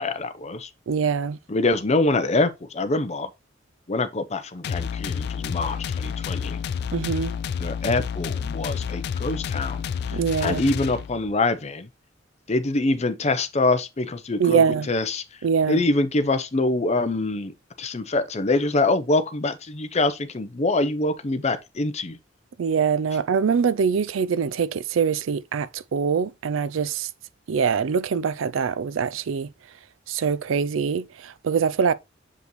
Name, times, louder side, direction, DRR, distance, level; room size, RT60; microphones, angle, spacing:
voice 1, 0.0-0.7 1.5-3.3 3.9-6.6 7.6-11.9 12.5-22.2, left 2 dB, 35° left, 0.7 m, -25 dB
voice 2, 0.9-1.4 6.9-7.4 10.1-10.6 14.4-14.9 15.4-15.8 22.6-27.1 27.5-29.5 30.1-31.9, right 6 dB, 80° right, 0.4 m, -23 dB
sound 1, 4.6-11.3, left 7 dB, 55° left, 0.3 m, -30 dB
6.7 x 5.1 x 3.1 m
head